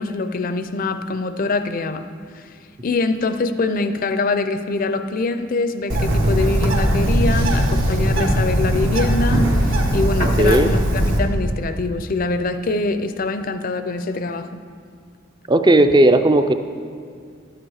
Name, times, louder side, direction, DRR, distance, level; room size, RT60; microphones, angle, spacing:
voice 1, 0.0-2.1 2.4-2.5 2.8-14.5, left 3 dB, 45° left, 10 dB, 0.5 m, -24 dB
Bird, 5.9-11.2, equal, 75° right, 1.3 m, -19 dB
voice 2, 10.4-10.7 15.5-16.5, right 1 dB, 20° right, 9 dB, 0.4 m, -14 dB
11.5 x 9.0 x 4.8 m, 2.2 s
head